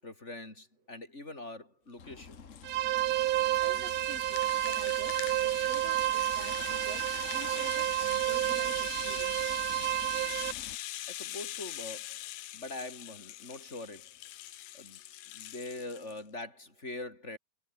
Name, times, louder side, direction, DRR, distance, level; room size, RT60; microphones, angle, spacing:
voice 1, 0.0-2.4 11.1-12.2 12.5-14.1 14.7-15.0 15.3-17.4, left 2 dB, 15° left, 6.4 m, -43 dB
Rattle (instrument), 2.0-16.2, left 15 dB, 70° left, 2.3 m, -43 dB
sound 1, 2.0-10.8, left 5 dB, 45° left, 0.9 m, -49 dB
sound 2, 2.6-10.5, right 15 dB, 85° right, 3.0 m, -30 dB
voice 2, 3.6-9.4, right 4 dB, 45° right, 6.1 m, -48 dB
omnidirectional pair, 4.2 m